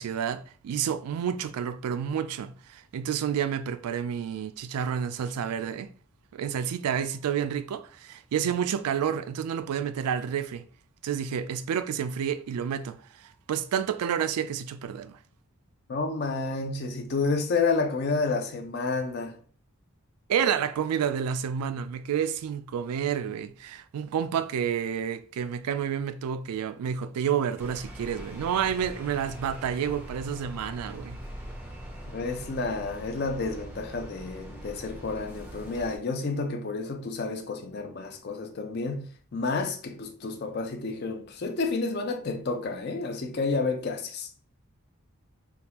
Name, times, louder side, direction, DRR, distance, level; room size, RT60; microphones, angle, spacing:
voice 1, 0.0-5.9 6.3-10.6 11.0-15.2 20.3-31.2, right 8 dB, 90° right, 0.3 m, -29 dB
voice 2, 15.9-19.4 32.1-44.3, left 3 dB, 45° left, 0.5 m, -30 dB
sound 1, 27.6-36.0, equal, 5° right, 0.5 m, -42 dB
3.5 x 2.3 x 2.9 m
head